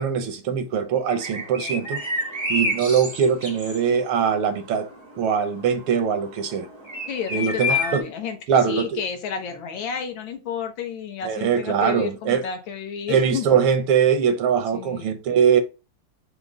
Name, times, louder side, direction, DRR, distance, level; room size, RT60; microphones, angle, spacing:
voice 1, 0.0-2.0 2.5-4.9 5.2-6.7 7.3-8.0 8.5-9.0 11.2-12.4 13.1-15.6, right 7 dB, 80° right, 1.6 m, -22 dB
sound 1, 1.1-8.0, left 2 dB, 40° right, 0.4 m, -29 dB
voice 2, 7.1-13.5 14.7-15.1, left 7 dB, 70° left, 1.4 m, -31 dB
5.1 x 2.1 x 4.6 m
omnidirectional pair, 2.4 m